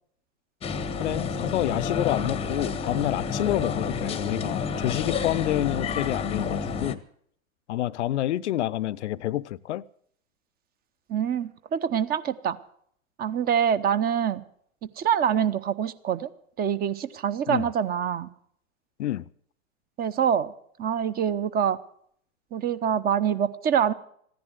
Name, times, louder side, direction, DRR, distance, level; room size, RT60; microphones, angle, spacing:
sound 1, 0.6-6.9, left 5 dB, 15° left, 0.9 m, -30 dB
voice 1, 1.0-7.0 7.7-9.8 17.5-17.7 19.0-19.3, left 13 dB, 60° left, 0.6 m, -28 dB
voice 2, 11.1-12.6 13.2-14.4 14.8-16.3 16.6-18.3 20.0-20.5 20.8-21.8 22.5-23.9, right 8 dB, 25° right, 0.8 m, -25 dB
15.0 x 10.5 x 7.9 m
figure-of-eight pair, 100°, 39 cm